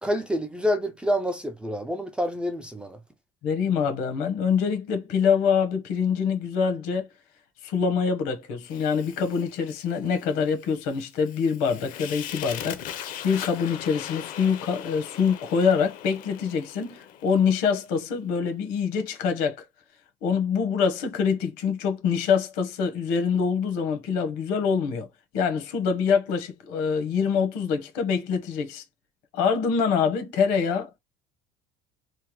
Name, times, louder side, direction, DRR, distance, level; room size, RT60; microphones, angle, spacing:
voice 1, 0.0-3.0, equal, 5° right, 0.3 m, -27 dB
voice 2, 3.4-7.1 7.6-19.6 20.2-25.1 25.3-28.8 29.3-31.0, left 6 dB, 85° left, 1.0 m, -25 dB
Fire, 8.6-17.9, left 10 dB, 55° left, 0.5 m, -40 dB
3.2 x 2.1 x 3.0 m
cardioid pair, 155°, 16 cm